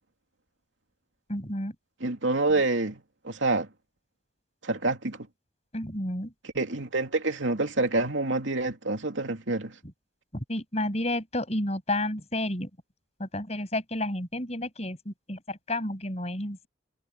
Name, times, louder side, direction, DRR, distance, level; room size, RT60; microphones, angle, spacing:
voice 1, 1.3-1.7 5.7-6.3 10.3-12.7 13.2-16.7, left 1 dB, 35° left, 7.7 m, -31 dB
voice 2, 2.0-3.7 4.6-5.3 6.5-9.7, right 2 dB, 75° right, 2.8 m, -27 dB
head